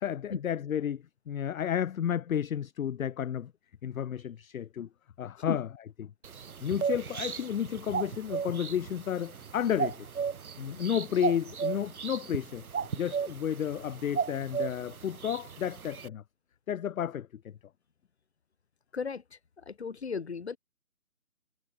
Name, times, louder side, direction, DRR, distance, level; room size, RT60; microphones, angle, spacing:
voice 1, 0.0-3.5 3.8-4.9 5.2-5.7 6.0-6.1 6.6-10.1 10.6-12.6 12.9-16.2 16.7-17.5, left 9 dB, 65° left, 0.5 m, -32 dB
sound 1, 6.2-16.1, right 6 dB, 70° right, 1.2 m, -35 dB
voice 2, 18.9-19.4 19.7-20.6, left 5 dB, 45° left, 1.2 m, -35 dB
hypercardioid pair, 175°, 44 cm